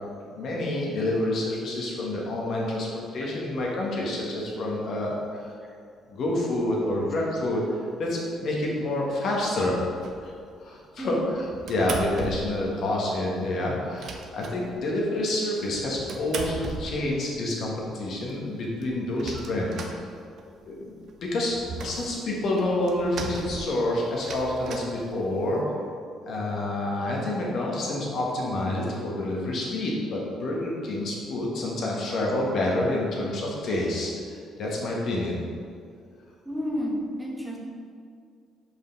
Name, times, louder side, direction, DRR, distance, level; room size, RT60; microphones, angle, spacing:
voice 1, 0.2-2.9 3.1-5.6 6.1-9.8 10.2-10.3 10.6-20.1 20.6-20.9 21.2-21.6 21.8-25.6 26.2-35.4, left 1 dB, 65° left, -3 dB, 1.5 m, -28 dB
sound 1, 10.0-10.5 11.0-12.7 13.0-13.1 13.4-13.5 13.7-15.1 15.6-17.4 17.9-18.0 18.3-18.4 18.6-20.7 21.0-25.6, right 4 dB, 65° right, 0.6 m, -38 dB
voice 2, 11.0-11.3 21.8-22.1 36.4-37.6, equal, 5° right, -3 dB, 1.4 m, -32 dB
5.5 x 4.8 x 4.0 m, 2.3 s
supercardioid pair, 65°, 0 cm